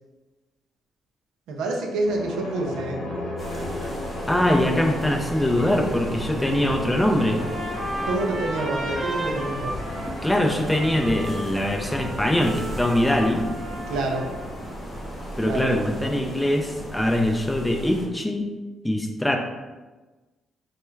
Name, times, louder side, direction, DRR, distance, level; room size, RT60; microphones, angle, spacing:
voice 1, 1.5-3.0 8.0-9.8 13.9-14.3 15.4-16.2, right 2 dB, 90° right, 1 dB, 0.4 m, -28 dB
sound 1, 2.0-17.0, left 1 dB, 80° left, 0.9 m, -37 dB
sound 2, 3.4-18.1, equal, 30° left, 0.8 m, -35 dB
voice 2, 4.3-7.5 10.2-13.5 15.4-18.5 18.8-19.4, left 1 dB, 10° left, 3 dB, 0.3 m, -22 dB
Trumpet, 7.2-14.5, right 1 dB, 45° right, 0.6 m, -34 dB
2.2 x 2.2 x 3.1 m, 1.2 s
cardioid pair, 90°, 0 cm